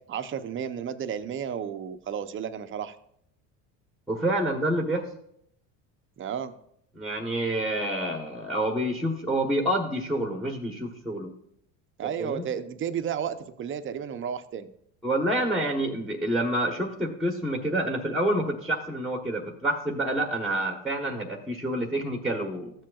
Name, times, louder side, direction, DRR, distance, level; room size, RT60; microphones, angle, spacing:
voice 1, 0.1-2.9 6.2-6.6 12.0-14.7, right 8 dB, 30° right, 10 dB, 0.6 m, -32 dB
voice 2, 4.1-5.0 6.9-11.3 12.2-12.5 15.0-22.7, right 1 dB, ahead, 2 dB, 1.0 m, -28 dB
14.0 x 7.4 x 2.3 m, 0.71 s
supercardioid pair, 115°, 39 cm